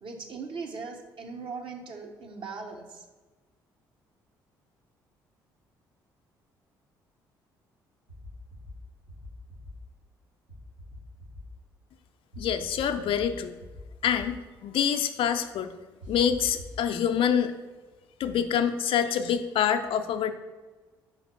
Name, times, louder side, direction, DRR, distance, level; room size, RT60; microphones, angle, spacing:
voice 1, 0.0-3.0, right 4 dB, 55° right, 2 dB, 1.1 m, -39 dB
sound 1, 8.1-8.7 9.1-9.7 10.5-11.4 12.3-13.3 13.6-14.3 16.0-16.8, left 1 dB, 80° right, 1.9 m, -44 dB
voice 2, 12.4-13.6 14.0-15.7 16.1-17.5 18.2-20.3, left 8 dB, 55° left, 8 dB, 0.5 m, -26 dB
5.2 x 4.4 x 5.8 m, 1.3 s
hypercardioid pair, 50°, 11 cm